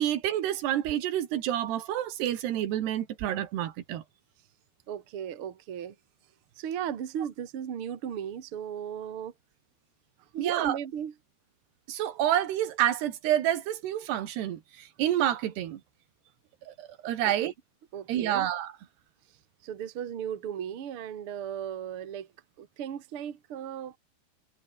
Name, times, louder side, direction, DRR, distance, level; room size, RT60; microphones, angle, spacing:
voice 1, 0.0-4.0 10.4-10.8 11.9-15.8 16.7-17.5 18.1-18.7, right 12 dB, 85° right, 3.9 m, -28 dB
voice 2, 4.9-6.0 6.6-9.3 10.2-11.1 17.2-17.5 17.9-18.5 19.6-22.3 22.6-24.0, right 9 dB, 45° right, 2.2 m, -36 dB
omnidirectional pair, 4.7 m